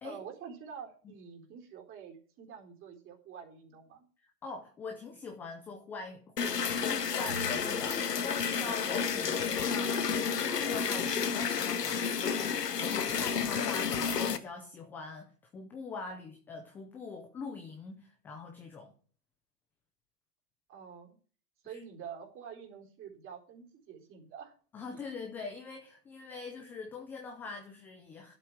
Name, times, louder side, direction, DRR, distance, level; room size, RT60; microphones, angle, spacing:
voice 1, 0.0-4.1 20.7-21.2 21.6-24.5 24.9-25.0, right 7 dB, 25° right, 2 dB, 4.0 m, -47 dB
voice 2, 4.2-18.9 21.6-21.8 24.7-28.3, left 4 dB, 5° left, 2 dB, 0.4 m, -43 dB
sound 1, 6.4-14.4, left 6 dB, 85° left, 1.7 m, -31 dB
11.0 x 7.9 x 5.9 m, 0.42 s
hypercardioid pair, 135°, 47 cm